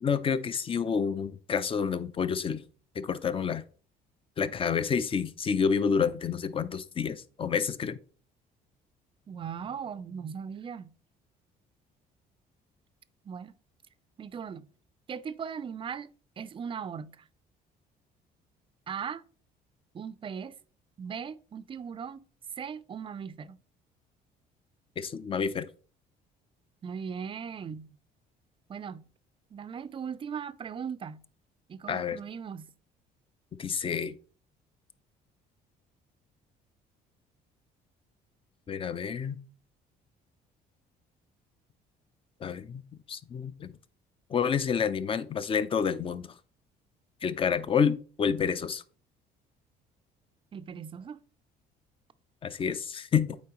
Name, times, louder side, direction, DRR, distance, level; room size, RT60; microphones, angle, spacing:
voice 1, 0.0-2.6 3.0-3.6 4.4-8.0 25.0-25.7 31.9-32.2 33.6-34.1 38.7-39.4 42.4-42.8 43.1-43.7 44.3-46.3 47.2-48.8 52.4-53.4, left 6 dB, 30° left, 0.5 m, -29 dB
voice 2, 9.3-10.9 13.2-13.5 14.2-14.7 15.1-16.1 16.4-17.3 18.9-19.2 19.9-20.6 21.0-22.2 22.6-23.6 26.8-27.9 28.7-29.1 29.5-31.2 31.7-32.7 50.5-51.2, right 7 dB, 30° right, 0.4 m, -38 dB
8.2 x 4.2 x 2.9 m
cardioid pair, 110°, 17 cm